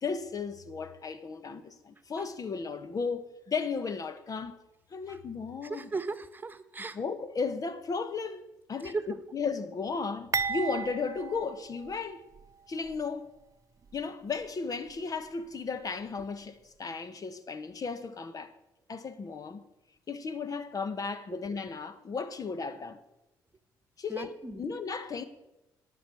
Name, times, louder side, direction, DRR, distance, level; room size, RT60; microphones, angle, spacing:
voice 1, 0.0-4.6 4.9-5.9 6.9-8.4 8.7-12.2 12.7-13.3 13.9-18.5 18.9-19.6 20.1-23.0 24.0-25.2, left 5 dB, 45° left, 1.2 m, -35 dB
voice 2, 5.6-7.0 8.8-9.0 24.1-24.6, right 3 dB, 25° right, 1.4 m, -36 dB
sound 1, 10.3-12.5 12.8-13.0 13.9-14.0, right 6 dB, 40° right, 0.8 m, -35 dB
18.0 x 6.1 x 8.5 m
supercardioid pair, 60°, 8 cm